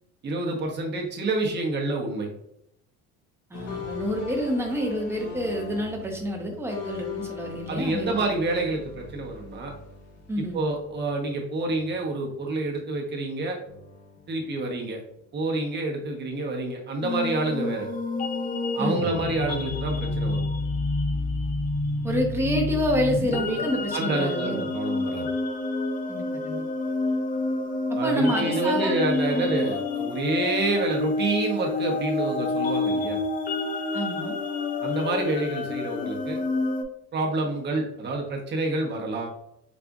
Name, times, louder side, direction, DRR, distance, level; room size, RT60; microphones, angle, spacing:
voice 1, 0.2-2.3 7.7-9.7 10.4-13.6 14.3-15.0 15.3-17.9 18.7-20.4 23.9-25.3 27.9-33.2 34.8-36.4 37.1-39.3, right 2 dB, 30° right, 0 dB, 0.9 m, -28 dB
sound 1, 3.5-11.4 11.7-13.2 13.7-15.2, left 6 dB, 60° left, 1.0 m, -41 dB
voice 2, 3.5-8.2 10.3-10.6 18.8-19.1 22.0-24.7 26.1-26.6 27.9-29.0 29.3-29.5 33.9-34.4, equal, 10° right, 0 dB, 0.7 m, -28 dB
sound 2, 17.0-36.8, left 3 dB, 25° left, 0.4 m, -28 dB
5.0 x 2.4 x 2.3 m, 0.76 s
cardioid pair, 125°, 33 cm